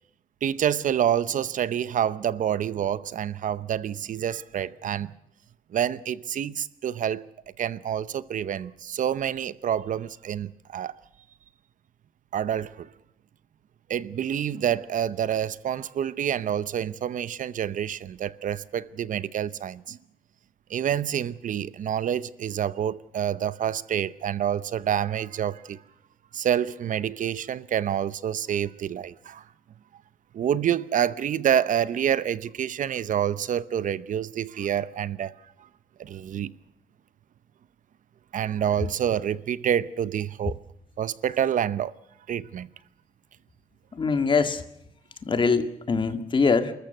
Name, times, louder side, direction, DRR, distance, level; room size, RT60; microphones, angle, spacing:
voice 1, 0.4-5.1 5.7-7.2 7.6-10.9 12.3-12.9 13.9-20.0 20.7-25.8 26.3-29.4 30.3-35.3 36.0-36.5 38.3-40.6 41.0-41.9 42.3-42.7, right 9 dB, 65° right, 0.8 m, -27 dB
voice 2, 44.0-44.6 45.3-46.7, left 4 dB, 35° left, 1.8 m, -23 dB
29.5 x 14.0 x 7.9 m
wide cardioid pair, 145°, 14 cm